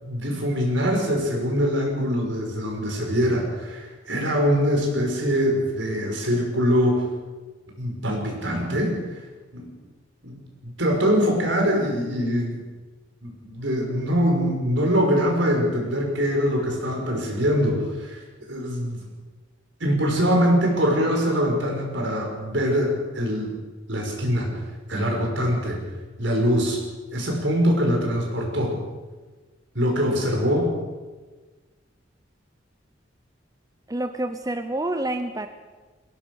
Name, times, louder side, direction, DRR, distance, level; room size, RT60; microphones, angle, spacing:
voice 1, 0.0-7.1 7.8-9.0 9.5-9.7 10.2-10.4 10.8-12.6 13.2-18.2 18.5-19.0 19.8-23.5 23.9-24.6 24.9-25.8 26.2-26.8 27.1-28.8 29.7-30.7, equal, 70° right, 1 dB, 6.1 m, -23 dB
voice 2, 33.9-35.5, right 1 dB, 20° right, 8 dB, 0.8 m, -28 dB
22.0 x 18.5 x 6.5 m, 1.3 s
head